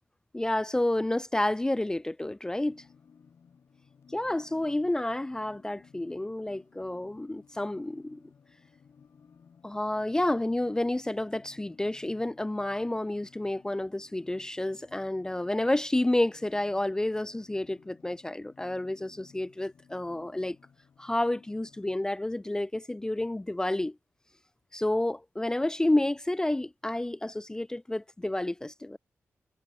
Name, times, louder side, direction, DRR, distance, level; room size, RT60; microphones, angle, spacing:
voice 1, 0.3-2.8 4.1-8.2 9.6-20.6 21.0-24.0 24.7-29.0, left 1 dB, 10° left, 0.4 m, -30 dB
sound 1, 2.7-22.1, left 6 dB, 65° left, 5.8 m, -59 dB
wide cardioid pair, 95°, 5 cm